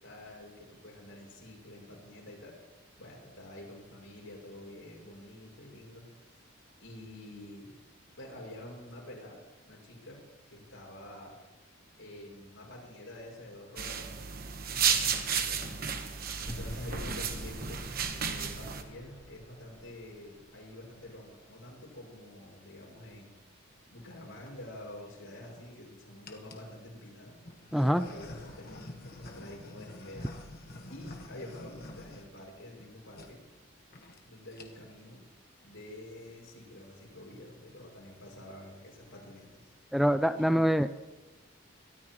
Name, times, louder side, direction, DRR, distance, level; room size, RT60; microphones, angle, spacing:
voice 1, 0.0-2.6 3.0-6.4 6.8-7.8 8.2-9.4 9.6-11.4 11.9-14.1 14.7-16.0 16.4-17.9 18.3-23.4 23.9-30.4 30.9-33.4 34.2-35.2 35.6-40.0 40.3-40.6, left 1 dB, 75° left, -2 dB, 6.4 m, -48 dB
sound 1, 13.8-18.8, right 7 dB, 45° right, 1.2 m, -32 dB
sound 2, 16.5-21.6, equal, 20° left, 3.2 m, -46 dB
sound 3, 24.1-24.5 25.2-25.8 26.2-26.7 27.4-32.9 33.1-33.3 33.6-33.7 33.9-34.2 34.5-35.0, left 1 dB, 45° left, 1.3 m, -47 dB
voice 2, 27.7-28.0 39.9-40.9, equal, ahead, 10 dB, 0.3 m, -25 dB
22.0 x 13.5 x 3.1 m, 1.2 s
head